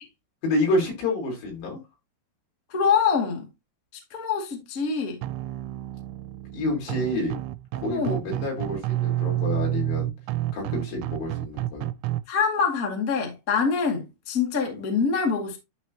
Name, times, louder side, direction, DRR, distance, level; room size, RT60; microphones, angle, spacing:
voice 1, 0.4-1.8 6.5-7.4 7.8-10.1 10.5-11.9, left 1 dB, 70° left, 6.2 m, -28 dB
voice 2, 2.7-3.5 4.1-5.2 7.9-8.2 12.3-15.6, left 6 dB, 35° left, 1.3 m, -25 dB
sound 1, 5.2-12.2, right 14 dB, 85° right, 2.9 m, -29 dB
11.5 x 4.5 x 2.9 m
omnidirectional pair, 5.3 m